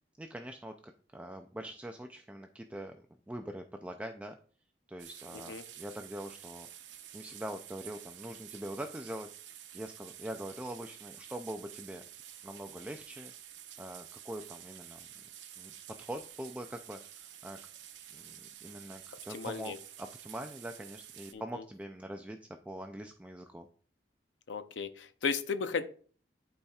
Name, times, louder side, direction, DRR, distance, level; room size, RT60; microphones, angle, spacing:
voice 1, 0.2-0.7 1.1-4.4 4.9-6.7 7.1-12.0 12.4-13.3 13.8-15.2 15.6-15.7 16.0-17.6 18.1-23.7, right 1 dB, 10° right, 5 dB, 0.3 m, -43 dB
sound 1, 5.0-21.3, right 10 dB, 90° right, 0.6 m, -50 dB
voice 2, 19.3-19.8 21.3-21.6 24.5-25.9, left 5 dB, 85° left, 10 dB, 0.6 m, -35 dB
12.0 x 4.2 x 2.3 m, 0.44 s
head